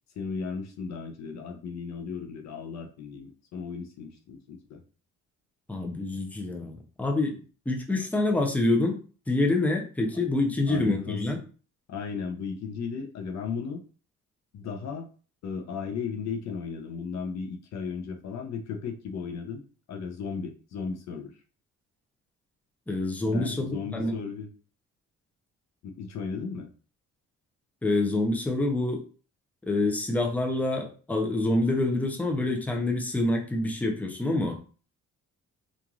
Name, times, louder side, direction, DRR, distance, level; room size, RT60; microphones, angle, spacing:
voice 1, 0.2-4.8 10.7-11.4 11.9-13.8 14.5-15.1 15.4-19.6 19.9-21.3 23.3-24.5 25.8-26.7, left 5 dB, 65° left, 4 dB, 0.6 m, -35 dB
voice 2, 5.7-7.3 7.7-8.9 9.3-11.4 22.9-24.1 27.8-29.0 29.7-34.6, left 2 dB, 5° left, 1 dB, 0.6 m, -26 dB
2.9 x 2.5 x 2.4 m, 0.38 s
cardioid pair, 90°, 30 cm